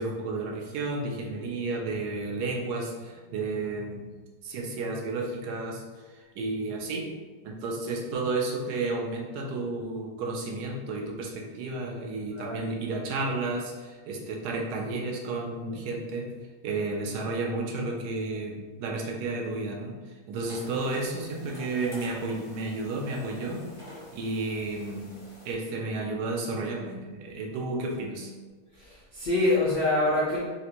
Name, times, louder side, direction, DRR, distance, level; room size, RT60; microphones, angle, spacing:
voice 1, 0.0-4.0 4.4-5.8 6.1-7.1 7.4-16.3 16.6-23.6 24.1-25.1 25.4-28.3, right 3 dB, 75° right, 0 dB, 1.1 m, -32 dB
sound 1, 20.5-25.5, left 1 dB, 25° left, 0.6 m, -48 dB
voice 2, 28.7-30.4, left 2 dB, 80° left, -6 dB, 0.5 m, -25 dB
3.5 x 2.5 x 2.9 m, 1.3 s
omnidirectional pair, 1.8 m